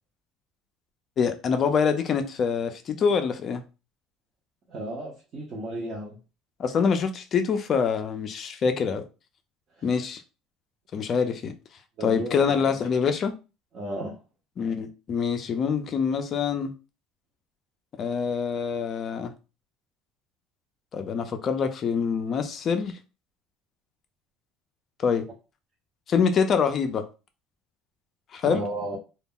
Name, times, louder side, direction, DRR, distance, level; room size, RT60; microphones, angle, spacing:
voice 1, 1.2-3.6 6.6-9.0 9.8-10.2 10.9-11.5 12.0-13.3 14.6-16.7 18.0-19.3 20.9-23.0 25.0-25.3 26.1-27.1 28.3-28.6, left 6 dB, 35° left, 0.4 m, -25 dB
voice 2, 4.7-6.2 9.8-9.9 12.0-12.8 13.7-14.2 28.4-29.0, right 1 dB, 35° right, 0.6 m, -34 dB
2.2 x 2.0 x 3.5 m
cardioid pair, 165°, 0 cm